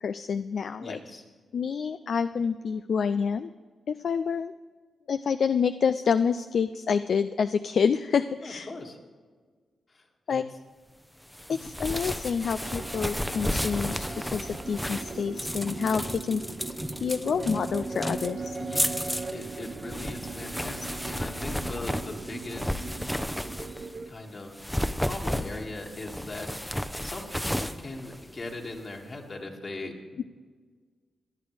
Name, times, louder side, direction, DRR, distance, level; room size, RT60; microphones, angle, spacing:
voice 1, 0.0-1.0 1.5-3.5 3.9-4.5 5.1-8.7 10.3-10.4 11.5-16.4 17.0-18.6 30.2-30.3, left 6 dB, 65° left, 11 dB, 0.3 m, -28 dB
voice 2, 0.8-1.2 8.4-9.0 9.9-10.4 11.6-11.7 18.6-23.6 24.1-24.7 25.0-30.2, left 2 dB, 50° left, 1 dB, 2.3 m, -40 dB
sound 1, 11.3-24.0 24.5-28.8, equal, 5° left, 0.7 m, -33 dB
sound 2, 12.6-24.1, right 4 dB, 50° right, 0.7 m, -39 dB
18.5 x 11.0 x 3.4 m, 1.5 s
supercardioid pair, 40°, 0 cm